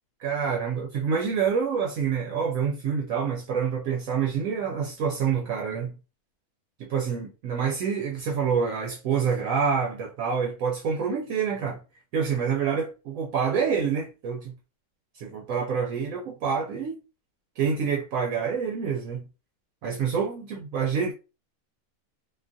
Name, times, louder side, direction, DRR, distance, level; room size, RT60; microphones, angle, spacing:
voice 1, 0.2-5.9 6.8-11.8 12.1-14.5 15.1-17.0 17.6-19.3 19.8-21.1, right 6 dB, 70° right, 0.9 m, -27 dB
2.6 x 2.3 x 2.5 m
omnidirectional pair, 1.6 m